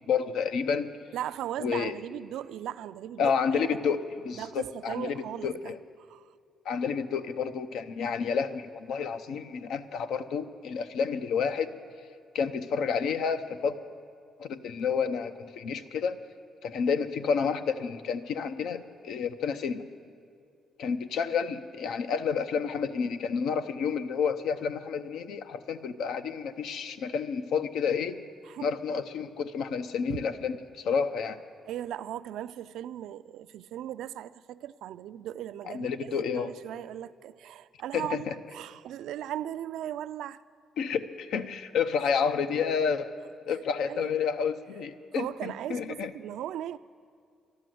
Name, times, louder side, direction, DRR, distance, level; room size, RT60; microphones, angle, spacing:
voice 1, 0.1-0.9 1.6-1.9 3.2-4.0 4.2-5.8 6.6-11.7 12.3-13.8 14.4-16.2 16.6-19.8 20.8-28.2 28.6-31.4 35.7-36.5 37.9-38.3 40.8-43.1 43.5-46.1, left 6 dB, 80° left, 0.7 m, -30 dB
voice 2, 1.1-3.3 3.8-3.9 4.3-6.3 28.4-28.7 30.1-30.2 31.7-40.4 43.9-44.1 45.1-46.8, right 11 dB, 80° right, 0.3 m, -38 dB
12.5 x 11.5 x 7.7 m
cardioid pair, 90°, 0 cm